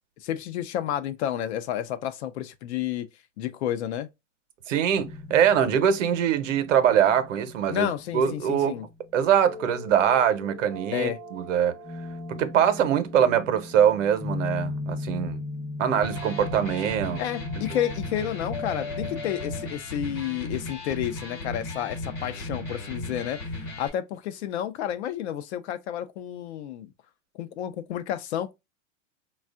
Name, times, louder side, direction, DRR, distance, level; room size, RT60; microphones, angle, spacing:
voice 1, 0.2-3.1 3.4-4.1 7.7-8.9 10.9-11.2 17.2-26.9 27.3-28.5, left 11 dB, 60° left, 0.7 m, -31 dB
voice 2, 4.7-8.8 9.1-11.8 12.3-15.4 15.8-17.2 17.7-17.8, right 9 dB, 80° right, 0.8 m, -23 dB
sound 1, 5.0-19.7, left 2 dB, 10° left, 0.5 m, -38 dB
Electric guitar, 15.9-23.9, left 2 dB, 30° left, 1.1 m, -36 dB
4.4 x 2.4 x 2.3 m
supercardioid pair, 150°, 37 cm